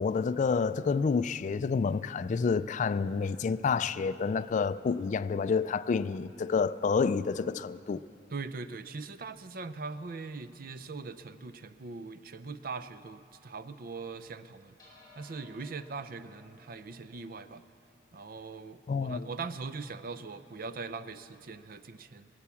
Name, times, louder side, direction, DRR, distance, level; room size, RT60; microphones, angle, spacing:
voice 1, 0.0-8.0 18.9-19.3, left 5 dB, 40° left, 0.3 m, -29 dB
voice 2, 8.3-14.8 15.2-17.6 18.1-22.3, right 4 dB, 50° right, 0.5 m, -41 dB
sound 1, 14.8-19.4, left 2 dB, 25° left, 4.6 m, -60 dB
22.5 x 8.5 x 7.0 m
head